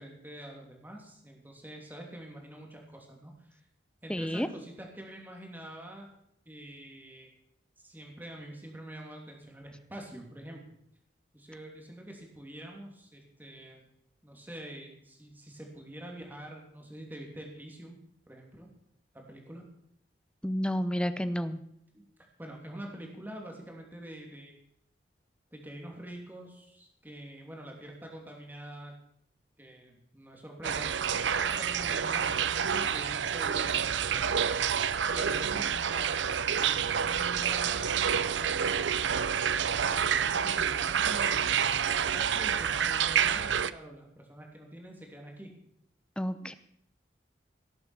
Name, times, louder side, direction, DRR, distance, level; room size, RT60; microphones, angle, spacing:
voice 1, 0.0-3.6 4.0-6.1 6.5-7.3 7.8-10.8 11.3-13.9 14.2-18.0 18.3-18.7 19.1-19.6 21.9-22.1 22.4-24.6 25.5-28.9 29.6-30.9 31.2-34.3 35.1-39.1 39.4-45.5, right 1 dB, 10° right, 0 dB, 2.9 m, -46 dB
voice 2, 4.1-4.5 20.4-21.6 46.2-46.5, equal, 5° left, 12 dB, 0.7 m, -30 dB
sound 1, 30.6-43.7, right 8 dB, 85° right, 0.6 m, -28 dB
17.5 x 7.8 x 7.2 m, 0.72 s
head